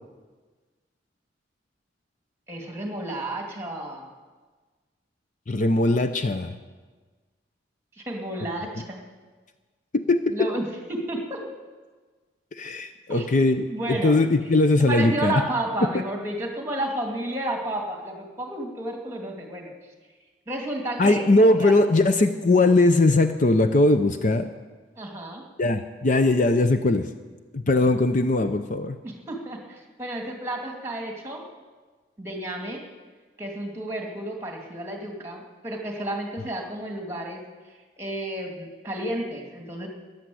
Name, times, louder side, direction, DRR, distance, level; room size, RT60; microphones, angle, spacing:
voice 1, 2.5-4.1 8.0-9.0 10.3-11.4 13.1-13.3 13.7-14.2 14.9-19.7 20.5-21.8 25.0-25.4 29.0-31.4 32.2-32.8 33.4-37.4 38.0-39.9, right 1 dB, 15° right, 1 dB, 2.4 m, -31 dB
voice 2, 5.5-6.6 9.9-10.5 12.5-15.4 21.0-24.5 25.6-27.1 27.5-29.0, left 2 dB, 45° left, 9 dB, 0.6 m, -20 dB
14.0 x 10.5 x 7.8 m, 1.4 s
head